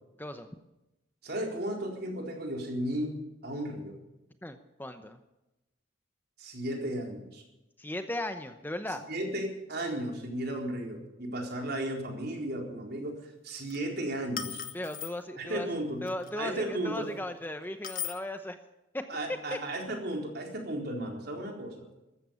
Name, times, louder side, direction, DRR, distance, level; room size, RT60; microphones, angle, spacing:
voice 1, 1.2-3.2 3.4-3.9 6.4-7.4 8.9-13.2 13.4-14.6 15.4-16.0 16.3-17.1 19.1-21.9, right 1 dB, 55° right, 2 dB, 4.1 m, -34 dB
voice 2, 4.4-5.2 7.8-9.0 14.7-15.7 16.0-18.6 18.9-19.0 19.5-19.6, left 1 dB, 10° left, 8 dB, 0.8 m, -37 dB
sound 1, 13.5-13.8 14.4-15.1 16.1-16.3 17.8-18.2, left 9 dB, 45° left, 1.3 m, -37 dB
14.5 x 13.5 x 7.1 m, 0.96 s
head